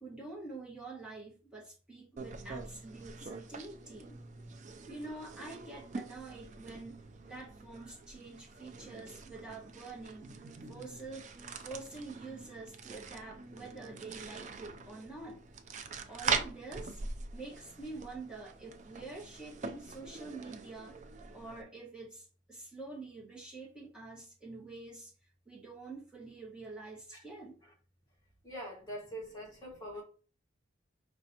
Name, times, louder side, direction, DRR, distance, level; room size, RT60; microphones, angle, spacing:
voice 1, 0.0-4.2 4.9-10.3 10.7-11.3 11.6-15.4 16.1-17.0 17.3-21.0 21.3-25.1 25.5-27.6, right 3 dB, 5° right, 1.6 m, -47 dB
sound 1, 2.2-21.6, right 5 dB, 40° right, 0.4 m, -43 dB
voice 2, 28.4-30.0, equal, 20° left, 1.6 m, -43 dB
5.1 x 3.3 x 2.9 m
head